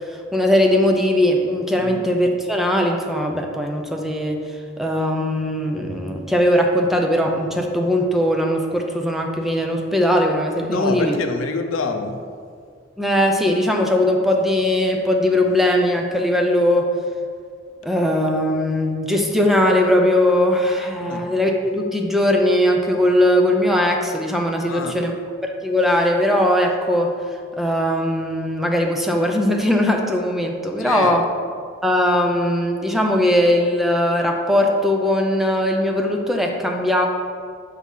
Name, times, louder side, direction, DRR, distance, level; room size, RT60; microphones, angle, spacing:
voice 1, 0.3-4.4 4.8-11.2 13.0-16.9 17.8-25.1 25.4-27.1 27.6-31.3 31.8-37.1, left 1 dB, ahead, 1 dB, 0.5 m, -19 dB
voice 2, 10.7-12.2 21.0-21.3 24.6-25.0 30.8-31.2, left 4 dB, 85° left, 6 dB, 0.6 m, -26 dB
6.1 x 3.8 x 5.5 m, 2.1 s
head